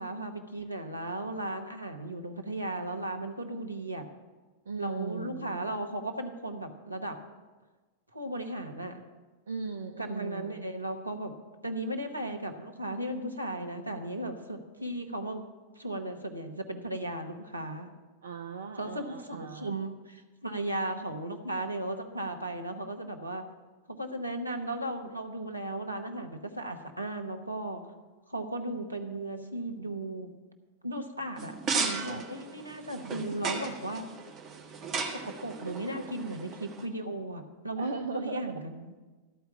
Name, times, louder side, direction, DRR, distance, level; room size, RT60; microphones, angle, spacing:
voice 1, 0.0-4.1 4.8-7.2 8.1-9.0 10.0-11.3 11.6-15.4 15.8-17.9 18.8-23.4 23.9-27.8 28.3-30.3 30.8-34.1 35.2-38.9, right 1 dB, 85° right, 5 dB, 0.9 m, -36 dB
voice 2, 4.7-5.6 9.5-10.7 18.2-19.8 37.8-38.7, right 5 dB, 65° right, 5 dB, 0.5 m, -38 dB
sound 1, 31.4-36.9, right 4 dB, 30° right, 1.5 m, -36 dB
13.5 x 4.6 x 8.6 m, 1.3 s
figure-of-eight pair, 90°, 0 cm